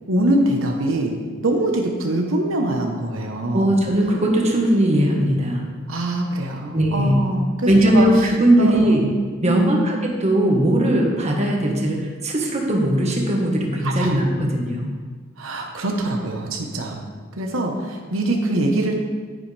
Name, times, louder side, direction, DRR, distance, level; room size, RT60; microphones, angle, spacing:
voice 1, 0.1-3.7 5.9-8.0 8.6-9.2 9.4-10.0 13.8-14.2 15.4-17.0 17.4-18.9, right 1 dB, 85° right, 1 dB, 1.2 m, -23 dB
voice 2, 3.5-5.7 6.7-7.2 7.7-9.0 9.4-14.9, right 1 dB, 35° right, 0 dB, 1.5 m, -19 dB
10.0 x 9.8 x 3.4 m, 1.5 s
head